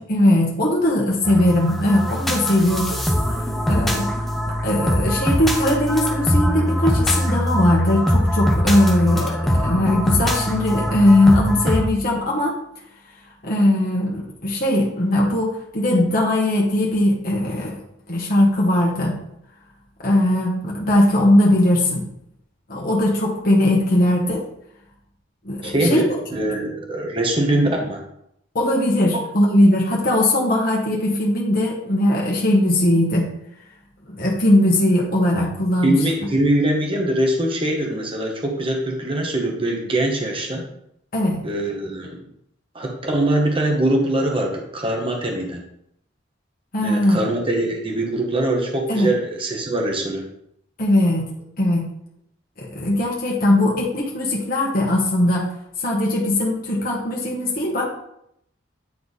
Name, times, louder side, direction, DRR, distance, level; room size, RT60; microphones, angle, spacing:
voice 1, 0.0-3.0 3.7-4.1 4.5-12.6 13.4-17.8 18.1-19.2 20.0-22.0 22.7-24.4 25.4-26.2 28.5-33.3 34.1-36.0 41.1-41.4 46.7-47.2 48.9-49.1 50.8-51.2 51.6-51.9 52.6-55.5 55.8-57.8, left 1 dB, 45° left, -3 dB, 1.3 m, -19 dB
sound 1, 1.2-11.9, equal, ahead, 0.8 m, -22 dB
voice 2, 25.6-26.0 26.3-28.0 29.1-29.2 35.8-40.6 41.4-42.2 42.7-45.6 46.8-50.3, right 1 dB, 25° right, 0 dB, 1.1 m, -22 dB
9.5 x 3.4 x 4.1 m, 0.75 s
head